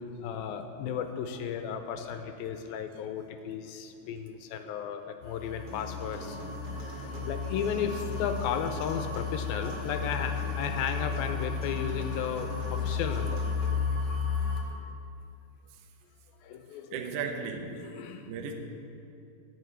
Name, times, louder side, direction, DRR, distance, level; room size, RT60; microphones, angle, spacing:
voice 1, 0.2-13.4 16.4-17.2 17.7-18.3, left 7 dB, 80° left, 7 dB, 2.3 m, -35 dB
sound 1, 5.2-14.6, left 5 dB, 50° left, 2.1 m, -33 dB
Human voice, 5.7-13.7, left 1 dB, 35° right, 1.8 m, -45 dB
voice 2, 16.9-18.0 18.3-18.5, right 5 dB, 70° right, 3 dB, 2.0 m, -36 dB
14.5 x 5.9 x 8.8 m, 2.6 s
omnidirectional pair, 4.6 m